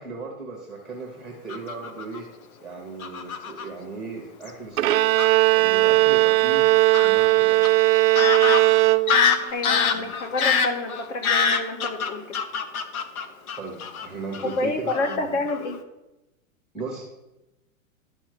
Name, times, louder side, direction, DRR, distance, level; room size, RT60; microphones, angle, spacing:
voice 1, 0.0-2.3 2.6-5.0 5.5-7.7 9.8-10.1 13.6-15.4 16.7-17.0, right 3 dB, ahead, -2 dB, 0.7 m, -37 dB
Fowl / Bird vocalization bird call bird song, 1.5-2.2 3.0-3.7 4.5-4.6 4.9-5.3 6.9-7.1 7.6-7.7 8.2-14.1 14.3-14.6 14.9-15.2 15.5-15.7, left 6 dB, 85° left, 1.2 m, -25 dB
Bowed string instrument, 4.8-9.5, right 18 dB, 75° right, 0.6 m, -18 dB
voice 2, 9.5-12.4 14.4-15.8, left 2 dB, 60° left, 5 dB, 1.9 m, -28 dB
11.5 x 4.1 x 6.4 m, 0.96 s
supercardioid pair, 165°, 41 cm